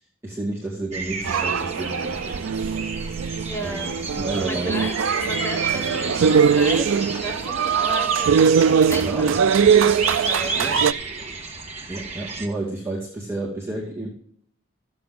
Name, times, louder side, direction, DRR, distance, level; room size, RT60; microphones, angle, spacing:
voice 1, 0.2-2.4 3.6-4.9 9.0-9.4 10.5-10.8 11.1-11.2 11.9-14.1, right 2 dB, 15° right, -6 dB, 2.3 m, -31 dB
sound 1, 0.9-12.5, right 4 dB, 30° right, 1.6 m, -31 dB
sound 2, 1.3-10.9, right 6 dB, 75° right, 0.4 m, -21 dB
voice 2, 3.4-4.0 4.4-9.6 10.1-11.0, equal, 10° left, -5 dB, 3.4 m, -35 dB
Bowed string instrument, 4.8-9.7, equal, 55° left, 4.7 m, -44 dB
14.5 x 7.7 x 3.7 m, 0.66 s
head